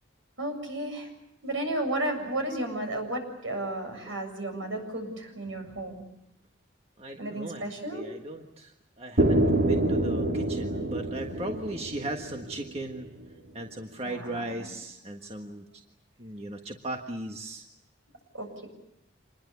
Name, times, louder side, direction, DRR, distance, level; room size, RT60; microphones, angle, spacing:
voice 1, 0.4-1.1 1.4-6.0 7.2-8.0 14.0-14.7 18.3-18.7, right 1 dB, 80° right, 4 dB, 7.5 m, -33 dB
voice 2, 7.0-13.1 13.5-15.6 16.2-17.6, right 1 dB, 30° right, 3 dB, 1.6 m, -37 dB
sound 1, 9.2-13.1, right 1 dB, 55° right, 3.6 m, -27 dB
27.5 x 21.5 x 8.4 m, 0.83 s
head